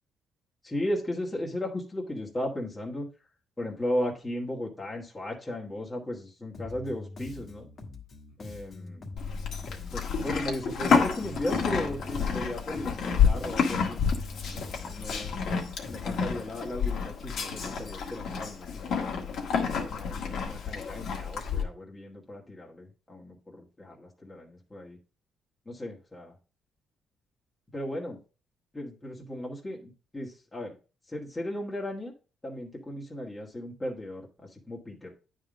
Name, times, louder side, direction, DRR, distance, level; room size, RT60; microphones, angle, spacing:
voice 1, 0.6-3.1 3.6-7.7 8.4-9.0 9.9-14.0 14.5-15.5 15.9-19.2 19.9-25.0 25.7-26.3 27.7-28.2 28.7-30.7 31.1-32.1 32.4-35.1, left 1 dB, 20° left, -2 dB, 1.5 m, -36 dB
Bass guitar, 6.5-16.4, left 3 dB, 50° left, 1.6 m, -44 dB
Livestock farm animals working animals, 9.2-21.6, left 6 dB, 65° left, 1.6 m, -29 dB
9.0 x 3.8 x 5.0 m, 0.35 s
cardioid pair, 90°, 0 cm